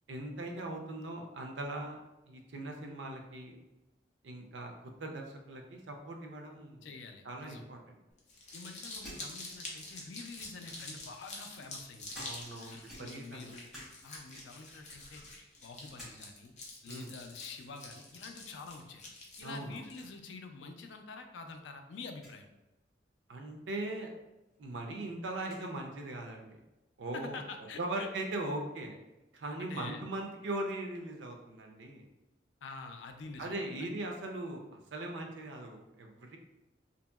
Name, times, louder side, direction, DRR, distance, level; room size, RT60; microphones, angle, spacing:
voice 1, 0.1-3.6 4.2-6.9 7.2-7.8 12.2-13.5 16.9-17.1 19.4-19.8 23.3-24.1 24.6-26.6 27.0-27.4 27.8-29.0 29.3-32.1 33.4-36.4, right 2 dB, 80° right, 2 dB, 0.5 m, -40 dB
voice 2, 6.8-7.6 8.5-12.1 12.7-13.7 14.0-15.2 15.6-16.5 16.8-19.0 19.4-22.5 27.1-28.1 29.6-30.0 32.6-33.9, left 4 dB, 90° left, 5 dB, 0.4 m, -47 dB
Crumpling crinkling, 8.2-20.0, left 2 dB, 40° left, 0.6 m, -47 dB
sound 1, 9.0-10.2 11.0-12.6 12.9-14.0 14.3-14.7 15.2-16.2 16.5-16.6 17.4-17.6 19.1-19.4 19.7-19.8 19.9-20.1 20.9-21.0 22.1-22.4 24.1-24.2 24.5-25.7, equal, ahead, 1.0 m, -53 dB
2.8 x 2.7 x 2.2 m, 1.0 s
head